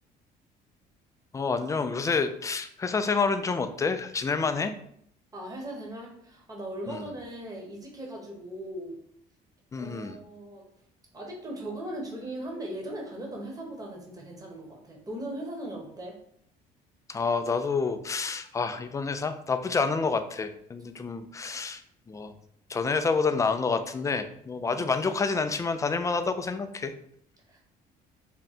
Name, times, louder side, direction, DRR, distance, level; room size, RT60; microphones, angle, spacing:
voice 1, 1.3-4.7 6.9-7.1 9.7-10.2 17.1-21.8 22.1-22.3 22.7-26.9, left 4 dB, 20° left, 9 dB, 0.3 m, -28 dB
voice 2, 5.3-9.0 9.8-10.7 11.1-16.2 24.7-24.8 27.5-27.6, right 1 dB, 20° right, 0 dB, 1.0 m, -38 dB
3.7 x 2.1 x 4.2 m, 0.68 s
cardioid pair, 110°, 17 cm